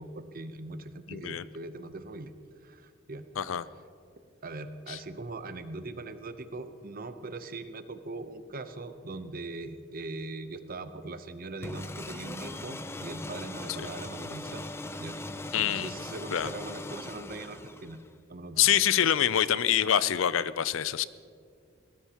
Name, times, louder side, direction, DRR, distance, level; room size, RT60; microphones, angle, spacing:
voice 1, 0.0-2.3 2.6-3.3 4.4-14.7 15.0-15.2 15.6-18.0 18.3-18.9, right 2 dB, 45° right, 10 dB, 0.8 m, -41 dB
voice 2, 1.1-1.5 3.4-3.6 4.9-5.0 15.5-15.9 16.3-16.5 18.6-21.0, left 10 dB, 80° left, 16 dB, 0.5 m, -25 dB
sound 1, 11.6-18.2, left 2 dB, 15° left, 0.5 m, -40 dB
21.5 x 18.5 x 3.0 m, 2.2 s
head